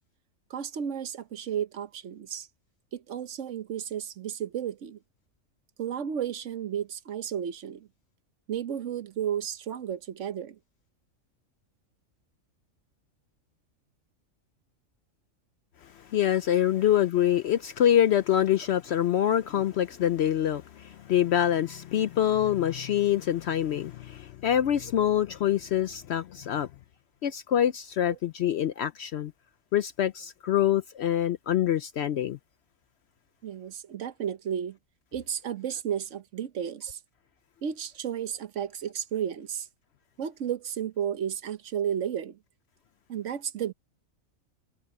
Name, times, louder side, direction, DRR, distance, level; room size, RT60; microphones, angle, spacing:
voice 1, 0.5-2.5 2.9-5.0 5.8-7.9 8.5-10.6 16.7-16.8 28.1-28.2 33.4-34.8 35.1-37.0 37.6-39.7 40.2-42.4 43.1-43.7, right 9 dB, 65° right, 1.1 m, -33 dB
voice 2, 16.1-26.7 27.2-29.3 29.7-32.4, left 10 dB, 65° left, 0.7 m, -25 dB
omnidirectional pair, 1.5 m